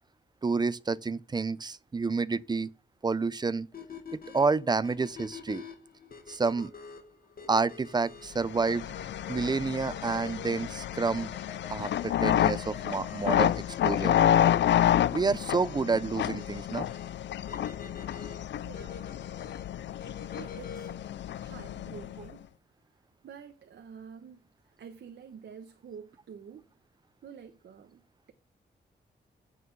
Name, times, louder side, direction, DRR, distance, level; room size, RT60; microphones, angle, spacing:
voice 1, 0.4-2.7 3.0-3.7 4.1-5.6 6.3-6.7 7.5-8.9 9.3-11.3 11.7-13.5 13.8-14.1 15.1-16.9, right 4 dB, 25° right, 0.5 m, -29 dB
sound 1, 3.7-21.1, left 5 dB, 55° left, 1.8 m, -47 dB
sound 2, 8.4-22.3, left 10 dB, 75° left, 0.4 m, -29 dB
voice 2, 18.5-19.2 20.4-20.9 21.3-22.4 23.2-26.7 27.2-28.3, right 7 dB, 75° right, 1.1 m, -48 dB
8.5 x 5.6 x 6.9 m
wide cardioid pair, 120°, 18 cm